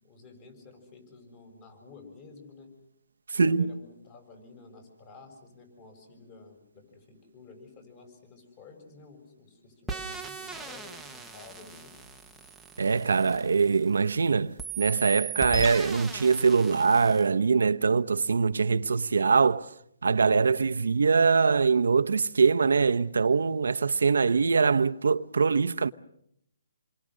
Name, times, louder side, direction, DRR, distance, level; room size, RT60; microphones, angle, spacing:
voice 1, 0.0-2.7 3.3-11.9, left 4 dB, 25° left, 6.8 m, -51 dB
voice 2, 3.3-3.7 12.8-19.7 20.0-25.9, right 5 dB, 90° right, 0.9 m, -23 dB
sound 1, 9.9-14.2 14.6-17.3, right 3 dB, ahead, 1.1 m, -38 dB
28.5 x 22.5 x 6.4 m
hypercardioid pair, 165°, 0 cm